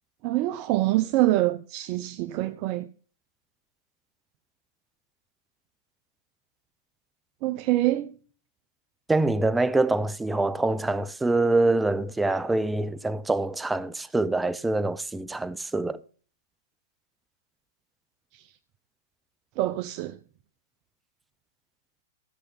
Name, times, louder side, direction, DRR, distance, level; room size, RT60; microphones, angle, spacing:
voice 1, 0.2-2.9 7.4-8.1 18.3-18.5 19.6-20.2, right 16 dB, 45° right, 0.8 m, -25 dB
voice 2, 9.1-16.0, right 2 dB, 5° right, 0.8 m, -25 dB
15.0 x 6.6 x 5.8 m
hypercardioid pair, 120°, 0 cm